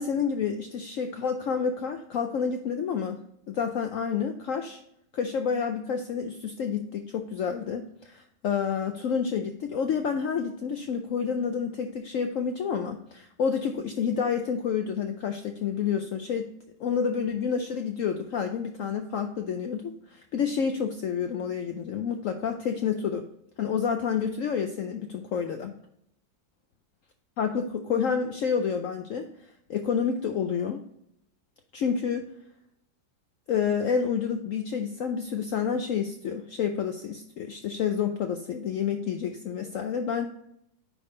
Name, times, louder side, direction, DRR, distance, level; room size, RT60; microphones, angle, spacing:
voice 1, 0.0-3.2 3.5-4.8 5.1-16.5 16.8-23.2 23.6-25.7 27.4-29.3 29.7-30.8 31.7-32.3 33.5-40.3, left 6 dB, 85° left, 5 dB, 0.7 m, -29 dB
9.6 x 3.6 x 3.8 m, 0.73 s
omnidirectional pair, 2.0 m